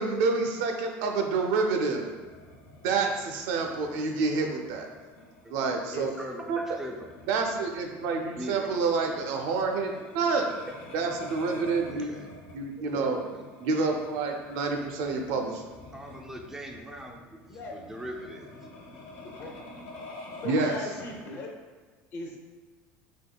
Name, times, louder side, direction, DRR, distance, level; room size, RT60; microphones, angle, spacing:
voice 1, 0.0-2.0 2.8-4.9 5.5-6.1 6.5-6.6 7.3-10.5 10.9-12.1 12.5-13.2 13.6-15.6 20.4-20.7, right 4 dB, 70° right, 3 dB, 0.5 m, -28 dB
sound 1, 2.0-21.2, left 2 dB, 85° left, 0.7 m, -48 dB
voice 2, 6.2-7.2 8.4-8.7 11.9-12.3 12.8-13.5 15.9-18.5, equal, 5° right, 1 dB, 0.3 m, -41 dB
voice 3, 20.4-21.5 22.1-22.4, left 2 dB, 40° left, 1 dB, 0.6 m, -37 dB
3.5 x 3.1 x 2.2 m, 1.4 s
cardioid pair, 145°, 6 cm